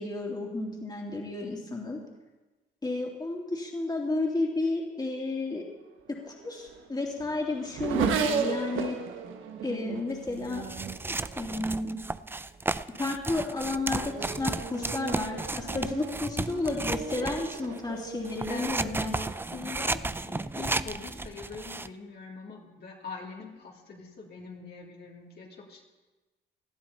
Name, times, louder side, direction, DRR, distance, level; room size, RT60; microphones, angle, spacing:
voice 1, 0.0-2.0 2.8-5.6 6.2-9.0 9.6-10.7 11.4-12.0 13.0-19.2, left 2 dB, 20° left, -2 dB, 3.0 m, -32 dB
Race car auto racing / Accelerating revving vroom, 6.1-12.0 12.8-13.2 13.6-19.5, right 6 dB, 80° right, 1.3 m, -36 dB
sound 1, 10.3-17.8 18.2-21.9, right 2 dB, 10° right, 0.4 m, -34 dB
voice 2, 18.5-25.8, left 4 dB, 55° left, -2 dB, 3.1 m, -43 dB
19.0 x 12.5 x 4.2 m, 1.2 s
cardioid pair, 90°, 20 cm